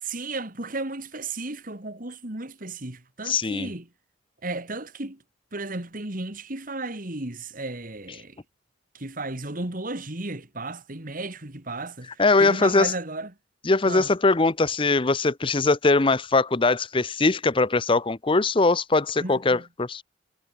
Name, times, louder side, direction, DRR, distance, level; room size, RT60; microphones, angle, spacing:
voice 1, 0.0-3.9 4.4-5.2 5.5-8.4 8.9-13.3 13.9-14.1 19.2-19.6, right 2 dB, 45° right, 2.5 m, -34 dB
voice 2, 3.3-3.7 12.2-12.9 13.7-20.0, left 3 dB, 25° left, 0.7 m, -21 dB
head